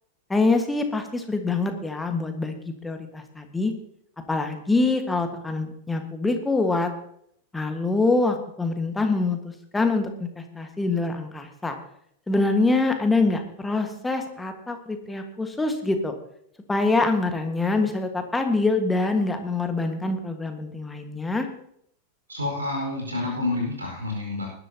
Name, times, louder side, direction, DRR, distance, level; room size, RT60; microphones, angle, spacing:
voice 1, 0.3-3.7 4.3-6.9 7.5-11.8 12.3-16.1 16.7-21.5, left 3 dB, 10° left, 5 dB, 1.7 m, -25 dB
voice 2, 22.3-24.5, left 2 dB, 75° right, 0 dB, 5.0 m, -28 dB
20.5 x 11.5 x 2.9 m, 0.70 s
figure-of-eight pair, 90°, 0 cm